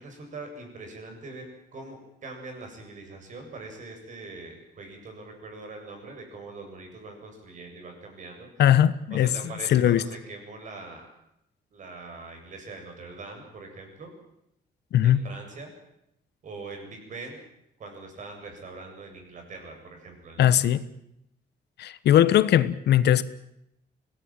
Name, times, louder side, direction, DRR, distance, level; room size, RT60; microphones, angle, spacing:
voice 1, 0.0-8.5 9.1-11.1 11.7-14.1 15.0-15.7 16.4-17.4 17.8-20.6, right 3 dB, 50° right, 7.8 m, -42 dB
voice 2, 8.6-9.3 9.7-10.0 14.9-15.2 20.4-20.8 21.8-23.2, left 11 dB, 85° left, 1.2 m, -19 dB
25.0 x 18.0 x 9.1 m
cardioid pair, 160°, 17 cm